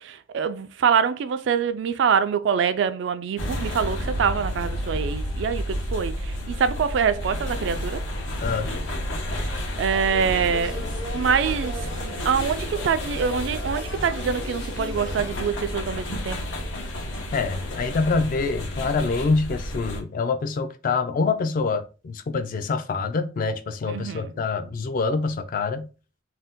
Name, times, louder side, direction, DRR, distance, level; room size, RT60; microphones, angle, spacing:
voice 1, 0.0-8.0 9.8-10.8 11.1-16.4 23.9-24.3, right 6 dB, 65° right, 0.3 m, -25 dB
sound 1, 3.4-20.0, equal, 90° left, 0.8 m, -31 dB
voice 2, 8.4-8.8 17.3-25.9, left 4 dB, 45° left, 0.3 m, -25 dB
sound 2, 9.9-15.5, left 1 dB, 60° left, 1.0 m, -38 dB
2.7 x 2.1 x 3.4 m
head